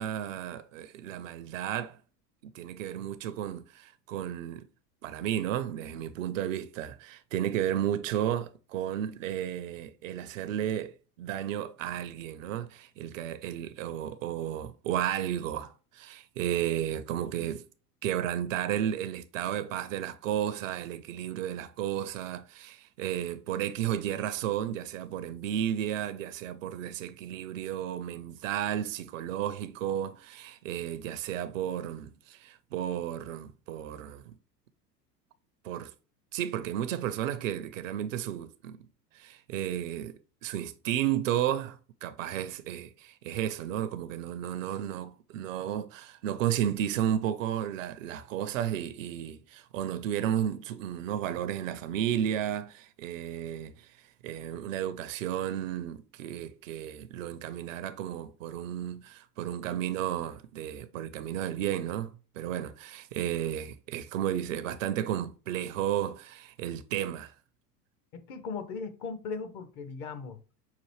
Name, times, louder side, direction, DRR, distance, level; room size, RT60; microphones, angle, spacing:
voice 1, 0.0-2.0 2.5-4.7 5.0-17.6 18.0-34.3 35.6-35.9 36.3-38.8 39.1-53.9 54.2-67.3, right 10 dB, 55° right, 0.5 m, -33 dB
voice 2, 68.1-70.4, left 5 dB, 35° left, 0.7 m, -38 dB
5.8 x 2.4 x 3.1 m
figure-of-eight pair, 80°, 49 cm